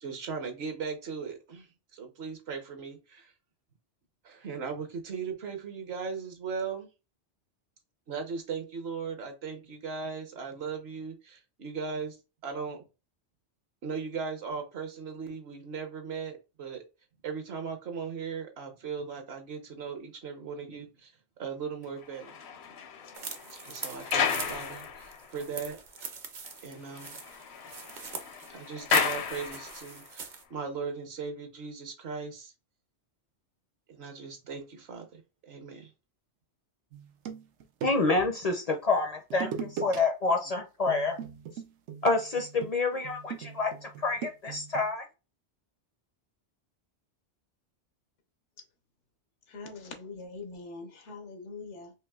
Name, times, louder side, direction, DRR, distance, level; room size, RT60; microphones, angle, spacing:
voice 1, 0.0-3.3 4.2-6.9 8.1-12.2 12.4-12.9 13.8-16.8 17.2-21.1 21.4-22.4 23.5-25.8 26.6-27.2 28.5-30.2 30.5-32.5 33.9-35.2 35.5-35.9, right 5 dB, 65° right, 1.1 m, -38 dB
sound 1, 22.0-25.5 26.0-26.1 26.4-26.5 26.8-30.1, left 7 dB, 70° left, 0.9 m, -33 dB
sound 2, 23.1-30.4, right 5 dB, 50° right, 0.7 m, -42 dB
sound 3, 36.9-38.3 39.3-40.0 40.3-40.5 40.9-44.9, right 6 dB, 85° right, 1.0 m, -39 dB
voice 2, 37.8-41.2 42.0-45.1, left 3 dB, 45° left, 0.5 m, -28 dB
voice 3, 49.5-51.9, left 3 dB, 90° left, 1.2 m, -43 dB
4.5 x 2.9 x 2.3 m
omnidirectional pair, 1.2 m